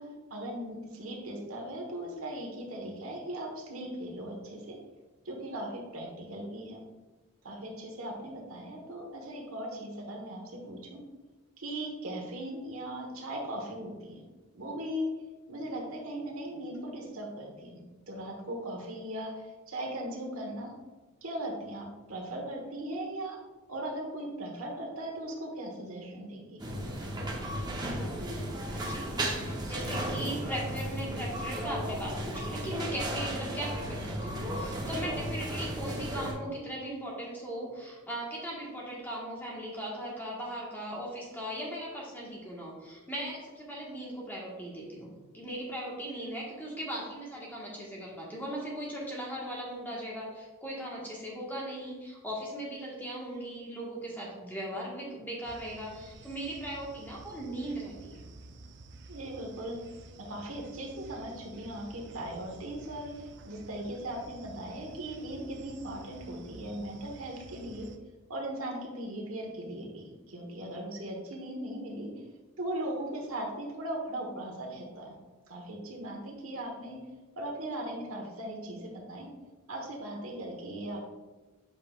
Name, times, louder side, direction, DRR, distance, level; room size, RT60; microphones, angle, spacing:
voice 1, 0.0-4.8 5.2-6.8 7.4-11.0 11.6-14.2 14.5-15.1 15.5-17.8 18.1-20.7 21.2-23.4 23.7-26.6 59.1-59.8 60.2-67.9 68.3-72.1 72.6-75.1 75.5-77.0 77.4-79.3 79.7-81.1, right 1 dB, 85° right, 0 dB, 1.3 m, -38 dB
sound 1, 26.6-36.3, right 1 dB, 20° right, 0.9 m, -35 dB
voice 2, 28.7-58.2, right 1 dB, 10° left, -4 dB, 1.4 m, -38 dB
sound 2, 55.4-68.0, right 3 dB, 55° right, 0.5 m, -51 dB
8.0 x 5.2 x 2.4 m, 1.2 s
head